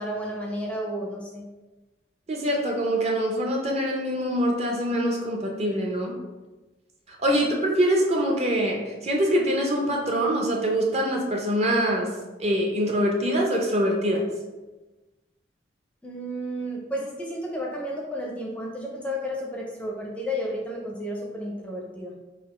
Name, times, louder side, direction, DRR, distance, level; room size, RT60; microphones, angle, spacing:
voice 1, 0.0-1.4 16.0-22.1, equal, 5° left, -2 dB, 0.5 m, -32 dB
voice 2, 2.3-6.2 7.1-12.1 12.4-14.3, equal, 35° right, 0 dB, 0.6 m, -24 dB
4.0 x 2.4 x 4.1 m, 1.1 s
head